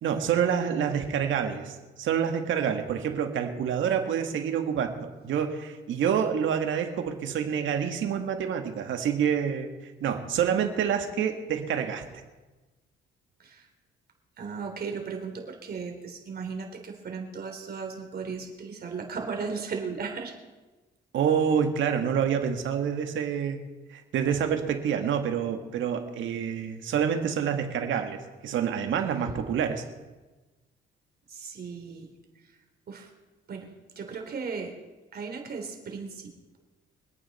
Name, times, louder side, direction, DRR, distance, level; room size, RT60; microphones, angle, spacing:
voice 1, 0.0-12.0 21.1-23.6 23.9-29.8, right 8 dB, 75° right, 6 dB, 1.8 m, -27 dB
voice 2, 14.4-20.3 31.3-32.1 32.4-32.5 32.9-33.1 33.5-34.7 35.1-36.6, right 5 dB, 50° right, 2 dB, 3.4 m, -36 dB
25.0 x 9.0 x 4.2 m, 1.2 s
cardioid pair, 90°, 20 cm